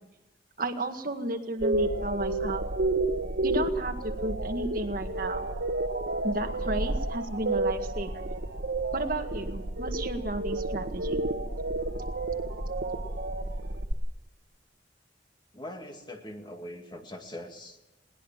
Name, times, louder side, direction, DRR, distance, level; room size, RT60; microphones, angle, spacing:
voice 1, 0.6-2.6 3.4-5.5 6.2-8.2 8.9-11.3, right 2 dB, 50° right, 5 dB, 2.0 m, -33 dB
sound 1, 1.6-13.9, right 2 dB, 65° right, 1.4 m, -30 dB
voice 2, 15.5-17.8, left 1 dB, 25° left, 4 dB, 2.2 m, -42 dB
21.0 x 19.0 x 7.3 m, 0.99 s
head